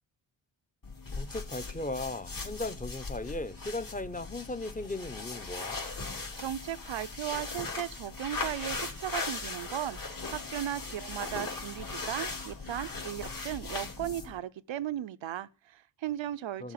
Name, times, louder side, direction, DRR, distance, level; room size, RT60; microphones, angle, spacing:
sound 1, 0.8-14.4, left 3 dB, 45° left, 3.4 m, -39 dB
voice 1, 1.1-5.8 16.6-16.7, left 2 dB, 20° left, 1.0 m, -37 dB
voice 2, 6.4-16.7, right 12 dB, 85° right, 0.7 m, -36 dB
14.5 x 7.2 x 9.3 m
cardioid pair, 70°, 44 cm